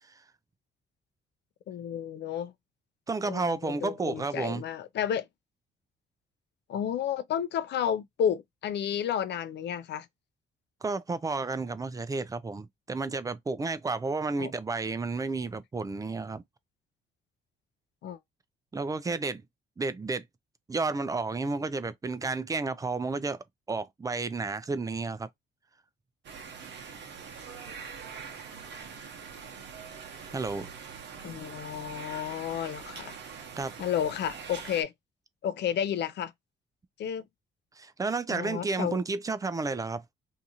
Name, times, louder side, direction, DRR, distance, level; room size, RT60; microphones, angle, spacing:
voice 1, 1.7-2.5 3.2-5.3 6.7-10.1 14.4-14.5 18.0-18.2 31.2-33.1 33.8-34.9 35.4-36.3 37.0-37.2 38.3-39.0, left 9 dB, 60° left, 0.5 m, -31 dB
voice 2, 3.1-4.6 10.8-16.4 18.7-19.4 19.8-20.3 20.7-25.3 30.3-30.7 33.6-33.7 37.8-40.0, right 3 dB, 15° right, 0.4 m, -31 dB
sound 1, 26.2-34.8, right 6 dB, 60° right, 0.8 m, -44 dB
2.7 x 2.4 x 2.7 m
cardioid pair, 90°, 20 cm